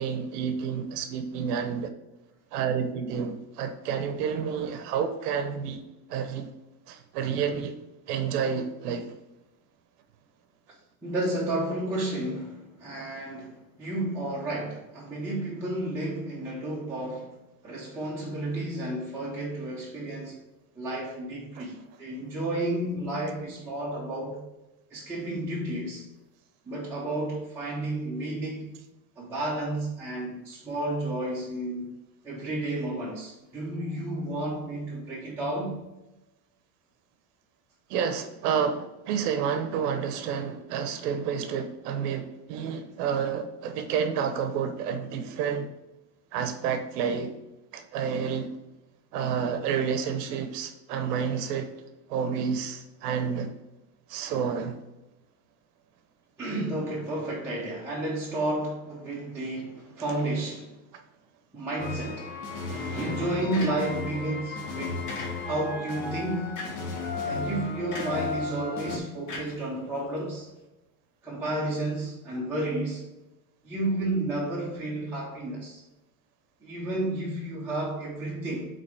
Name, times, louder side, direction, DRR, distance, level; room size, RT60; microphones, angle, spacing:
voice 1, 0.0-1.9 2.5-5.8 6.1-6.5 6.9-7.7 8.1-9.1 21.6-21.7 37.9-45.7 46.3-47.3 47.7-48.5 49.1-51.7 52.1-53.5 54.1-54.8, right 7 dB, 80° right, 0.9 m, -29 dB
voice 2, 11.0-17.4 17.6-20.4 20.8-24.4 24.9-26.0 26.7-28.7 29.2-31.9 32.2-35.8 56.4-60.7 61.5-62.3 62.6-65.1 65.5-66.6 67.2-70.5 71.2-73.0 73.6-75.8 76.6-78.7, right 1 dB, 5° right, 0.7 m, -31 dB
sound 1, 61.8-69.0, left 4 dB, 20° left, 0.3 m, -34 dB
sound 2, 63.5-64.2 65.1-65.7 66.6-67.0 67.9-68.3 69.3-70.2, left 2 dB, 45° left, 1.6 m, -39 dB
5.3 x 3.9 x 4.5 m
cardioid pair, 175°, 46 cm